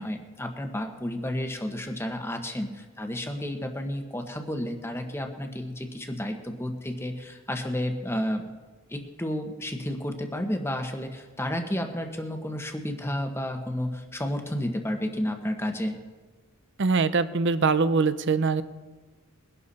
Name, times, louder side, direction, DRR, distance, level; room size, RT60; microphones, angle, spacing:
voice 1, 0.0-8.4 8.9-16.0, left 1 dB, 10° left, 4 dB, 1.2 m, -31 dB
voice 2, 16.8-18.6, right 4 dB, 55° right, 13 dB, 0.6 m, -23 dB
22.0 x 11.5 x 4.2 m, 1.3 s
head